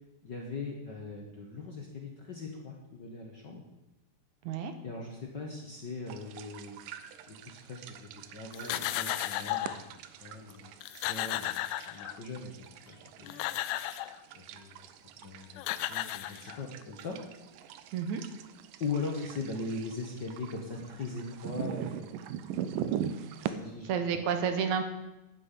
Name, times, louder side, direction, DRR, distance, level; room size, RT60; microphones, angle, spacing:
voice 1, 0.2-3.6 4.8-6.8 7.3-9.8 10.2-13.6 14.3-14.9 15.2-17.2 18.8-22.1 23.4-24.2, left 3 dB, 50° left, 0 dB, 1.4 m, -40 dB
sound 1, 6.1-23.5, right 10 dB, 90° right, 2.5 m, -42 dB
sound 2, 8.5-9.8 10.5-10.6 10.8-12.4 13.1-14.2 15.2-15.3 15.6-16.8, left 15 dB, 80° left, 2.0 m, -34 dB
voice 2, 17.9-18.2 23.8-24.9, right 7 dB, 70° right, 8 dB, 2.3 m, -30 dB
9.8 x 9.6 x 8.2 m, 0.98 s
omnidirectional pair, 3.7 m